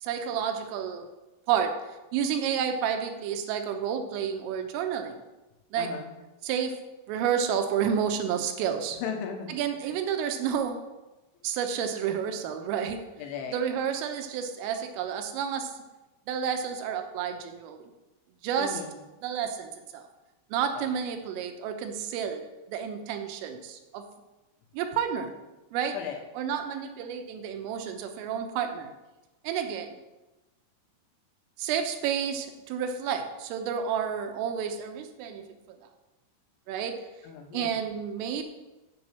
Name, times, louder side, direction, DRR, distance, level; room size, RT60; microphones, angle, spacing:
voice 1, 0.0-1.1 1.5-1.8 2.1-5.2 5.7-5.9 6.4-6.8 7.1-9.0 9.5-10.8 11.4-13.1 13.5-15.7 16.3-17.9 18.4-18.8 19.2-20.0 20.5-22.4 22.7-24.0 24.7-25.3 25.7-26.0 26.3-28.9 29.5-30.0 31.6-35.5 36.7-37.0 37.5-38.4, right 8 dB, 85° right, 6 dB, 3.5 m, -30 dB
voice 2, 5.8-6.1 9.0-9.6 13.2-13.6 18.6-18.9 20.8-20.9 25.9-26.2 37.2-37.8, left 7 dB, 75° left, 3 dB, 3.5 m, -36 dB
7.9 x 7.5 x 7.4 m, 1.1 s
omnidirectional pair, 5.7 m